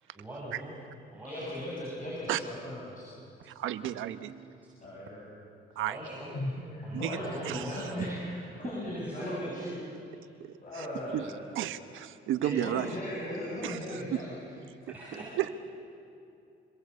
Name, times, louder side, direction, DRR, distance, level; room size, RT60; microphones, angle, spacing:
voice 1, 0.1-0.7 1.1-1.6 5.8-6.3 6.8-8.1 9.0-9.5 14.9-15.4, right 1 dB, 10° right, -7 dB, 7.9 m, -42 dB
voice 2, 1.2-3.1 4.8-5.3 6.3-9.8 10.6-11.7 12.4-14.4, left 1 dB, 40° left, -4 dB, 7.8 m, -37 dB
voice 3, 3.4-4.5 5.7-6.0 6.9-7.2 7.4-7.9 10.7-10.9 11.1-11.3 11.5-12.9 13.6-14.2 15.4-15.5, right 12 dB, 85° right, 11 dB, 1.2 m, -33 dB
28.5 x 22.5 x 8.4 m, 2.7 s
cardioid pair, 90°, 20 cm